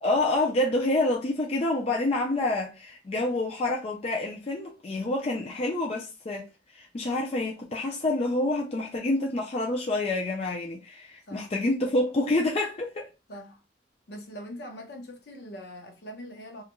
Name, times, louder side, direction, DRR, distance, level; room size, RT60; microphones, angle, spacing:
voice 1, 0.0-13.1, left 2 dB, 35° left, 0.4 m, -27 dB
voice 2, 13.3-13.6 14.1-16.6, equal, 65° left, 0.7 m, -42 dB
2.4 x 2.2 x 2.9 m
head